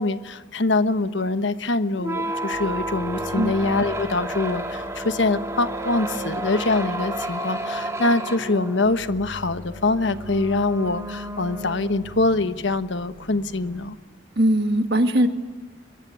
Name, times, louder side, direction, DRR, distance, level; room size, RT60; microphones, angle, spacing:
voice 1, 0.0-14.0, left 2 dB, 70° left, 11 dB, 1.2 m, -24 dB
sound 1, 2.0-12.3, right 1 dB, 15° right, 2.2 m, -31 dB
sound 2, 2.5-13.9, left 1 dB, 20° left, 3.3 m, -44 dB
voice 2, 14.4-15.3, right 1 dB, 55° right, 7 dB, 2.1 m, -20 dB
25.0 x 23.0 x 9.5 m, 1.3 s
head